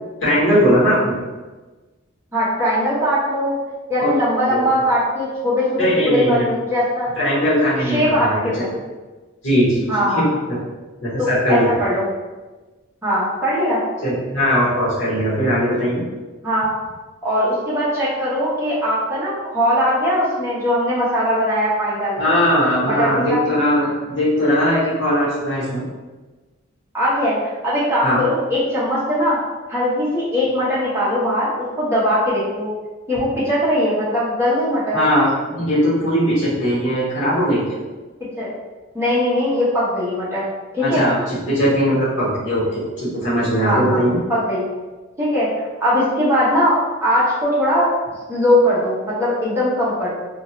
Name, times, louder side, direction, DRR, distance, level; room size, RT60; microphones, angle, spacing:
voice 1, 0.2-1.2 4.0-4.1 4.5-4.6 5.8-6.5 7.2-8.6 9.4-9.9 10.1-10.6 11.0-11.6 14.0-16.0 22.2-25.8 28.0-28.2 34.9-35.3 35.5-37.8 40.8-44.2, equal, 65° left, -9 dB, 1.2 m, -19 dB
voice 2, 2.3-3.6 3.9-7.1 7.8-8.7 9.9-10.2 11.2-12.0 13.0-13.8 16.4-16.7 17.2-22.3 22.9-23.4 26.9-29.4 29.7-32.7 33.1-35.0 38.4-38.5 38.9-40.4 40.7-41.0 43.6-44.0 44.3-44.6 45.2-47.9 48.3-50.1, equal, 15° right, -9 dB, 0.8 m, -20 dB
2.7 x 2.4 x 3.0 m, 1.2 s
head